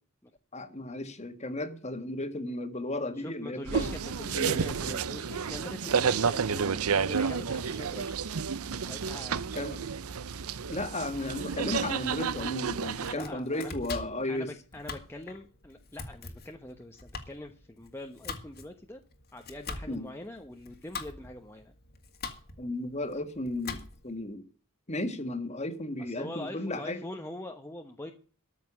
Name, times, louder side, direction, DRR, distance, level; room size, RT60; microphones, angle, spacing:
voice 1, 0.5-3.9 4.3-4.6 5.8-6.0 9.5-9.8 10.7-14.5 19.9-20.1 22.6-24.4 24.9-27.0, left 1 dB, 30° left, 1.7 m, -34 dB
voice 2, 3.1-8.3 8.9-9.7 13.0-13.7 14.3-19.0 19.3-21.7 26.0-28.1, left 1 dB, 10° left, 1.0 m, -43 dB
sound 1, 3.7-13.1, right 6 dB, 90° right, 0.7 m, -31 dB
Domestic sounds home sounds, 12.8-24.2, left 4 dB, 45° left, 1.9 m, -43 dB
13.5 x 6.0 x 8.5 m
head